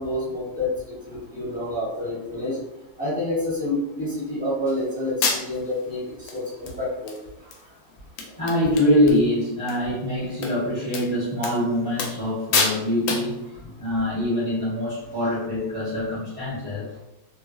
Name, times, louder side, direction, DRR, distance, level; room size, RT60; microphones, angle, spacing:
voice 1, 0.0-2.6 3.0-7.1, left 1 dB, 5° right, -10 dB, 0.8 m, -28 dB
sound 1, 4.7-4.8 5.2-5.8 6.3-6.4 6.7-7.2 7.5-7.6 7.9-8.0 8.2-9.2 9.5-9.8 10.4-10.5 10.9-11.1 11.4-11.6 12.0-12.3 12.5-12.8 13.1-13.3, left 4 dB, 75° left, 1.2 m, -26 dB
voice 2, 8.4-13.5 13.8-16.9, left 1 dB, 60° left, -11 dB, 0.3 m, -24 dB
3.2 x 2.3 x 2.5 m, 0.94 s
omnidirectional pair, 2.2 m